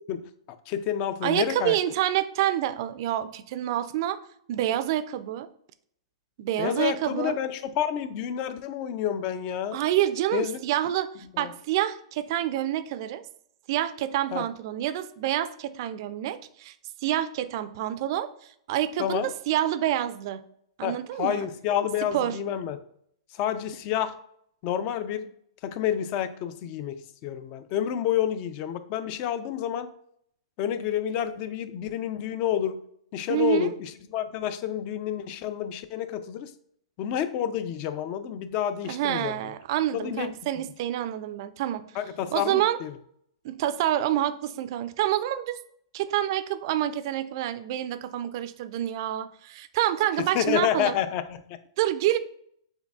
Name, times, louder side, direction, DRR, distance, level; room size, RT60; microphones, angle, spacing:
voice 1, 0.7-1.8 6.6-9.8 10.3-10.6 11.3-11.5 14.3-14.5 19.0-19.3 20.8-22.8 23.3-24.2 24.6-25.3 25.6-29.9 30.6-32.8 33.1-36.5 37.0-39.5 39.9-40.3 41.9-43.0 50.2-51.6, left 10 dB, 40° left, 12 dB, 0.4 m, -29 dB
voice 2, 1.2-4.2 4.5-5.5 6.4-7.4 9.7-11.1 11.4-13.2 13.7-16.7 17.0-18.3 18.7-20.4 20.8-21.5 22.1-22.4 33.3-33.7 38.8-41.8 42.3-42.8 43.4-45.6 45.9-50.9 51.8-52.2, right 12 dB, 50° right, 13 dB, 0.3 m, -27 dB
6.4 x 2.7 x 2.3 m, 0.69 s
hypercardioid pair, 120°, 3 cm